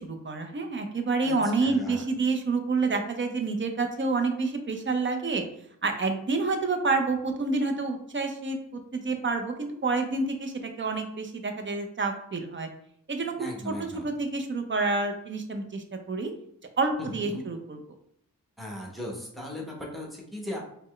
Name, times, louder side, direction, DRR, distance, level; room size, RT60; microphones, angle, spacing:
voice 1, 0.0-5.4 5.8-12.7 13.1-13.3 13.6-13.7 14.0-16.3 16.8-17.8, right 3 dB, 35° right, 5 dB, 0.6 m, -28 dB
voice 2, 1.2-2.1 13.4-14.1 17.0-17.4 18.6-20.6, left 1 dB, ahead, -2 dB, 0.9 m, -37 dB
4.2 x 2.1 x 3.1 m, 0.70 s
cardioid pair, 70°, 34 cm